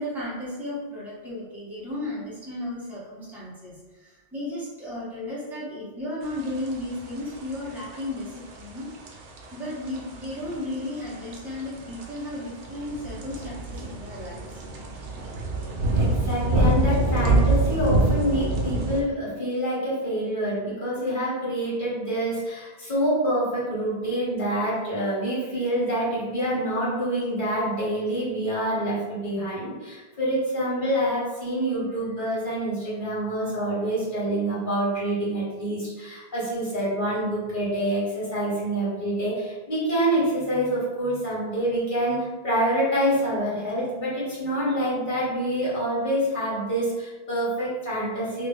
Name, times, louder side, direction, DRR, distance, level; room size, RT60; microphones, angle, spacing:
voice 1, 0.0-8.9 9.5-14.9, left 1 dB, ahead, -9 dB, 1.0 m, -34 dB
sound 1, 6.3-19.0, right 2 dB, 85° right, 0.9 m, -26 dB
voice 2, 15.9-48.5, right 1 dB, 50° left, -8 dB, 1.6 m, -26 dB
2.8 x 2.5 x 3.5 m, 1.2 s
omnidirectional pair, 1.1 m